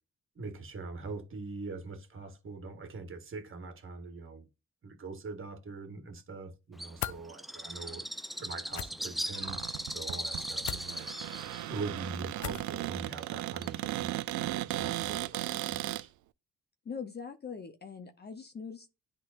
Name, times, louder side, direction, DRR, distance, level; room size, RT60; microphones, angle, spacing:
voice 1, 0.4-4.5 4.8-8.1 8.4-11.1 11.7-16.1, right 3 dB, 45° right, 1.8 m, -43 dB
Bird, 6.8-14.0, equal, ahead, 0.4 m, -39 dB
sound 1, 7.0-7.2 8.7-8.9 10.6-10.9 12.4-12.7, left 12 dB, 70° left, 0.6 m, -37 dB
Cupboard open or close, 9.3-16.0, right 15 dB, 70° right, 0.4 m, -36 dB
voice 2, 16.8-18.9, left 6 dB, 35° left, 0.9 m, -42 dB
10.5 x 3.9 x 2.6 m
cardioid pair, 90°, 30 cm